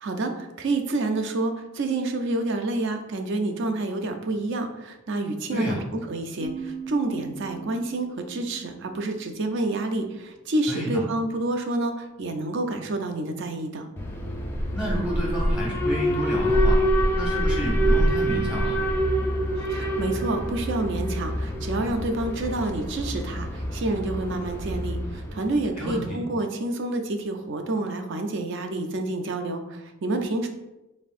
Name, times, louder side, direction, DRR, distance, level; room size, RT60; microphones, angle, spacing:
voice 1, 0.0-5.7 6.1-13.8 19.6-30.5, right 2 dB, 60° right, 5 dB, 0.5 m, -28 dB
voice 2, 5.5-5.8 10.7-11.0 14.7-16.8 17.2-18.8 25.8-26.2, right 1 dB, 5° right, -4 dB, 0.9 m, -30 dB
sound 1, 6.4-10.0, right 6 dB, 40° right, 0.9 m, -40 dB
Alarm, 14.0-26.0, equal, 10° left, 0.5 m, -26 dB
4.3 x 3.5 x 2.4 m, 0.99 s
head